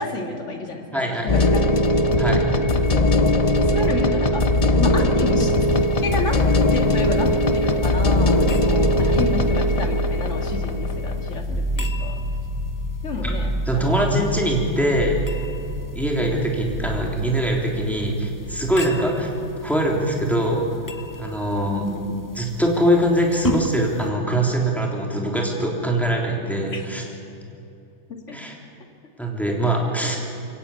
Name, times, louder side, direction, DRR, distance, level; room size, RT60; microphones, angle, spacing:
voice 1, 0.0-1.7 3.5-5.5 6.0-6.4 6.7-12.2 13.0-14.0 16.2-16.4 21.7-22.2 26.7-26.8 28.1-28.4 29.9-30.1, left 3 dB, 40° left, 3 dB, 2.5 m, -31 dB
voice 2, 0.9-1.3 2.2-2.5 9.0-9.2 13.7-15.2 15.9-19.3 19.6-20.7 21.2-21.8 22.4-27.0 28.3-28.5 29.2-30.2, right 1 dB, ahead, -1 dB, 3.4 m, -22 dB
sound 1, 1.3-11.4, left 1 dB, 80° left, 0.3 m, -20 dB
sound 2, 2.0-19.1, right 1 dB, 70° right, 7.6 m, -29 dB
sound 3, 5.6-24.1, left 1 dB, 20° left, 0.5 m, -38 dB
23.5 x 17.5 x 8.5 m, 2.8 s
omnidirectional pair, 2.0 m